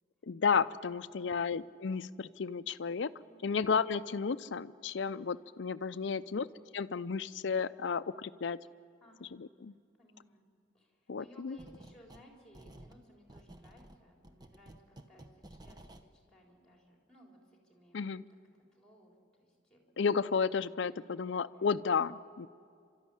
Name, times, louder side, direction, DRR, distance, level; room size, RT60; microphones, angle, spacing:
voice 1, 0.2-3.1 3.4-6.5 6.7-8.6 9.4-9.7 11.1-11.6 17.9-18.2 20.0-22.5, left 5 dB, 60° left, 13 dB, 0.5 m, -32 dB
voice 2, 0.9-1.4 3.2-3.5 6.0-6.3 9.0-9.4 10.0-10.4 10.7-19.8, equal, 5° left, 0 dB, 4.0 m, -61 dB
sound 1, 11.6-12.3 12.5-16.1, right 1 dB, 20° right, 0.8 m, -54 dB
29.0 x 13.0 x 10.0 m, 2.3 s
head